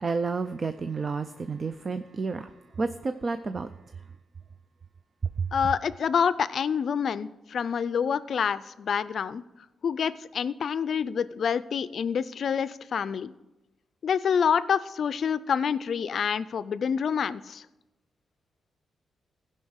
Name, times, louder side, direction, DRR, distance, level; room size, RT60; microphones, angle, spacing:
voice 1, 0.0-2.5 2.8-3.7 5.4-5.5, right 4 dB, 40° right, 10 dB, 0.4 m, -30 dB
voice 2, 5.5-9.4 9.8-13.3 14.0-17.6, left 7 dB, 60° left, 16 dB, 0.4 m, -27 dB
15.0 x 5.5 x 6.4 m, 1.0 s
cardioid pair, 90°, 0 cm